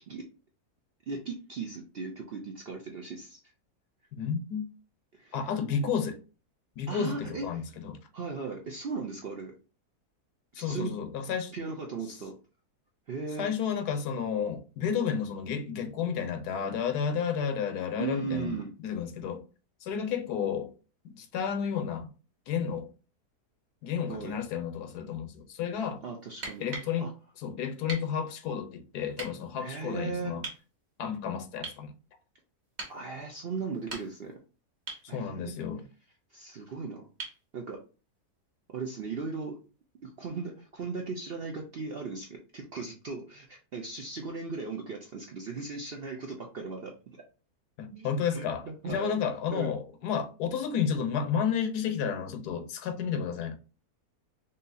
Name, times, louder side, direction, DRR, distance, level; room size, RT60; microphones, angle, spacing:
voice 1, 1.1-3.4 5.1-5.4 6.9-7.6 8.1-9.5 10.6-10.9 11.5-12.4 13.1-13.5 18.0-18.7 24.1-24.4 26.0-26.7 27.0-27.1 29.6-30.3 32.9-34.4 35.1-35.5 36.3-37.1 37.5-37.8 38.7-39.6 40.0-46.9 47.9-48.1 48.3-49.2 49.5-49.7, right 4 dB, 60° right, 0.6 m, -37 dB
voice 2, 4.1-4.7 5.3-6.2 6.8-8.0 10.5-11.5 13.4-19.4 19.8-20.7 21.2-22.1 22.5-22.9 23.8-26.0 26.6-27.1 27.4-30.4 31.0-31.9 35.1-35.9 47.8-53.6, left 7 dB, 80° left, 1.3 m, -31 dB
sound 1, 26.3-26.9 27.9-28.1 29.1-29.3 30.4-30.6 31.6-31.9 32.8-33.0 33.7-34.3 34.9-35.1 37.2-37.4 39.3-39.4, right 3 dB, 45° right, 1.6 m, -40 dB
5.5 x 2.7 x 2.6 m
omnidirectional pair, 1.7 m